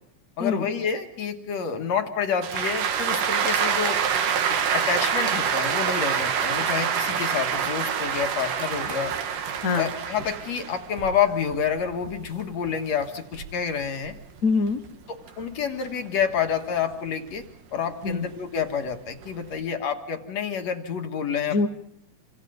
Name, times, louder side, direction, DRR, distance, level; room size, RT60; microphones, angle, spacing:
voice 1, 0.4-4.0 4.5-9.1 9.8-14.2 15.1-17.5 17.7-21.7, left 7 dB, 60° left, 5 dB, 2.9 m, -28 dB
sound 1, 2.4-14.9 15.3-17.4 17.9-19.6, right 7 dB, 90° right, 3.2 m, -27 dB
voice 2, 14.4-14.8 18.0-18.3 21.5-21.7, left 4 dB, 80° left, 8 dB, 0.7 m, -23 dB
27.5 x 25.5 x 5.3 m, 0.75 s
omnidirectional pair, 3.6 m